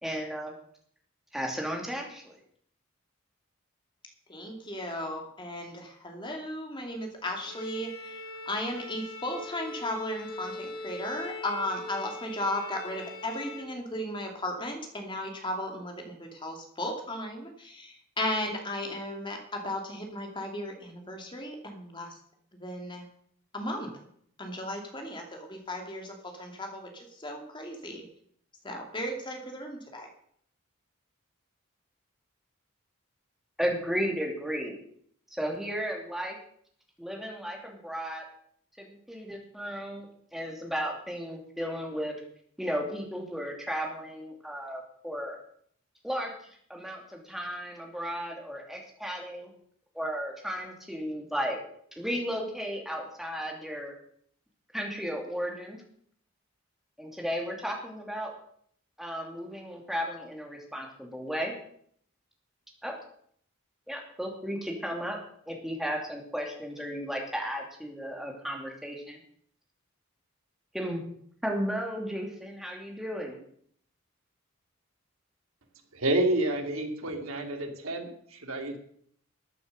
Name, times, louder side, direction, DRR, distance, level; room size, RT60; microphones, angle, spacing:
voice 1, 0.0-0.5 1.3-2.3 33.6-34.8 35.3-36.4 37.0-38.2 38.8-42.1 42.6-45.4 46.0-46.3 46.7-49.5 49.9-51.6 52.0-53.9 54.7-55.8 57.0-58.3 59.0-61.5 62.8-63.0 63.9-65.2 65.5-69.2 70.7-71.0 71.4-73.4, equal, ahead, 0 dB, 2.8 m, -34 dB
voice 2, 4.3-22.2 22.5-23.1 23.5-23.9 24.4-28.0 28.6-30.1, left 1 dB, 25° left, 3 dB, 2.5 m, -35 dB
Bowed string instrument, 7.4-13.8, left 2 dB, 80° left, 3.8 m, -42 dB
voice 3, 75.9-78.8, right 1 dB, 85° right, 3 dB, 2.5 m, -29 dB
14.0 x 9.4 x 6.6 m, 0.64 s
head